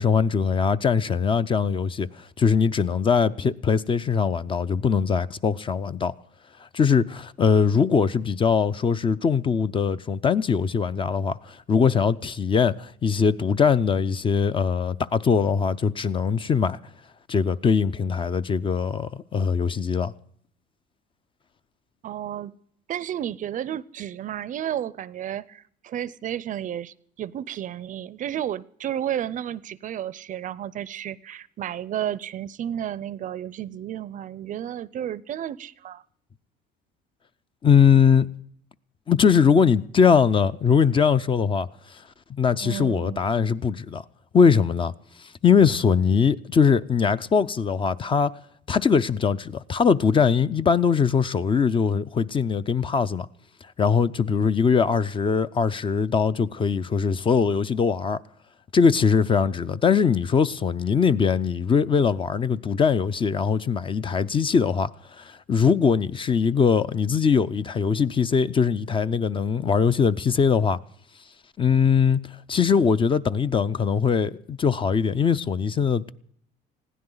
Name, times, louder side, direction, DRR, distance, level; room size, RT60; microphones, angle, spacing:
voice 1, 0.0-6.1 6.6-16.8 17.3-20.1 37.6-38.3 39.1-42.0 42.3-44.0 44.3-44.9 45.2-48.3 48.7-53.3 53.8-58.2 58.7-70.8 71.6-72.2 72.5-76.1, left 6 dB, 25° left, 0.5 m, -21 dB
voice 2, 22.0-22.5 22.9-36.0 42.6-43.2, right 10 dB, 45° right, 0.5 m, -32 dB
20.5 x 15.5 x 3.9 m
cardioid pair, 115°, 19 cm